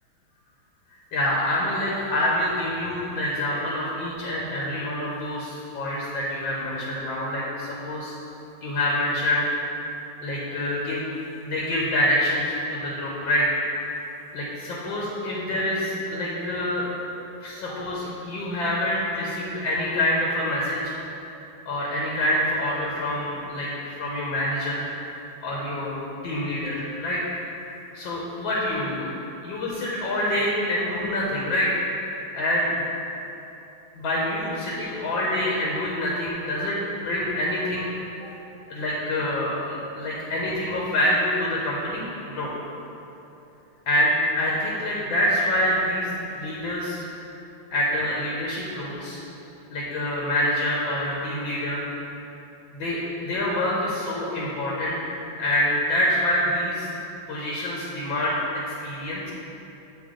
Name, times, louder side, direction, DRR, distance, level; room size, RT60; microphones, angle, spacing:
voice 1, 1.1-8.1 8.6-9.5 10.2-11.0 11.4-13.6 14.3-16.9 17.4-20.9 21.7-24.8 25.4-26.0 26.2-27.3 27.9-29.1 29.4-31.7 32.3-32.8 33.9-37.9 38.7-42.5 43.9-44.1 44.4-47.1 47.7-49.2 49.7-51.8 52.8-56.9 57.3-58.4 58.8-59.3, left 1 dB, 70° left, -4 dB, 1.5 m, -26 dB
7.8 x 3.4 x 3.7 m, 2.9 s
omnidirectional pair, 2.3 m